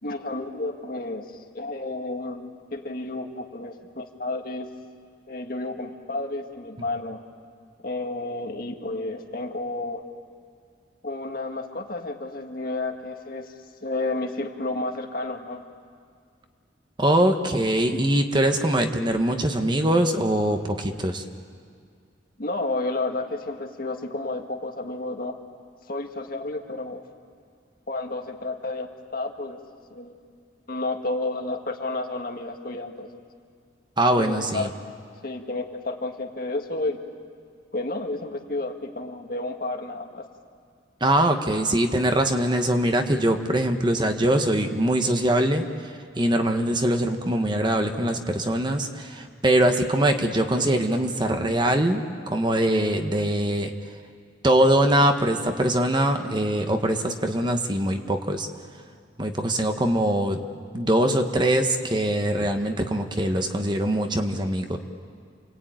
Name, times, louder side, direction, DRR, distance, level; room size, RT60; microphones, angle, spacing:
voice 1, 0.0-4.7 5.3-7.2 7.8-10.1 11.0-13.5 13.8-15.6 22.4-25.4 25.9-27.0 27.9-29.6 29.9-30.2 30.7-33.2 34.2-34.7 35.2-37.0 37.7-40.3, left 2 dB, 50° left, 3 dB, 1.9 m, -31 dB
voice 2, 17.0-21.2 34.0-34.7 41.0-45.6 46.1-53.7 54.4-58.5 59.2-60.4 60.7-64.8, right 1 dB, 25° right, 5 dB, 1.2 m, -22 dB
29.0 x 21.0 x 9.1 m, 2.2 s
head